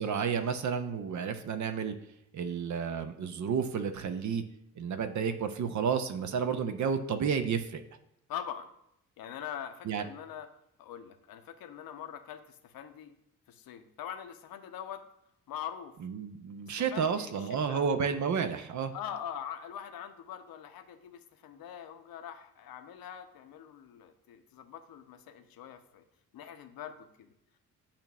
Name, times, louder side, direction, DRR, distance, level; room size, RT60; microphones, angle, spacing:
voice 1, 0.0-1.9 2.3-4.4 4.8-7.8 9.9-10.0 16.0-18.9, right 6 dB, 40° right, 8 dB, 0.8 m, -31 dB
voice 2, 8.3-8.7 9.2-10.5 10.8-13.1 13.5-15.0 15.5-16.0 16.9-17.8 18.9-26.1 26.3-27.3, left 9 dB, 55° left, 7 dB, 0.9 m, -43 dB
8.6 x 2.9 x 6.0 m, 0.77 s
figure-of-eight pair, 45°, 43 cm